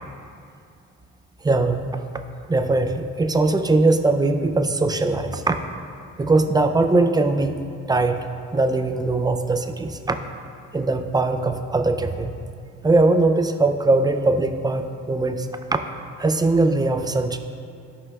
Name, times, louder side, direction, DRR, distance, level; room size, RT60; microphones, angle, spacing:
voice 1, 1.4-1.9 2.5-5.6 6.2-7.6 7.9-10.2 10.7-12.3 12.8-15.8 16.2-17.4, right 2 dB, 15° right, 7 dB, 0.4 m, -21 dB
12.5 x 5.6 x 2.3 m, 2.4 s
cardioid pair, 90°, 30 cm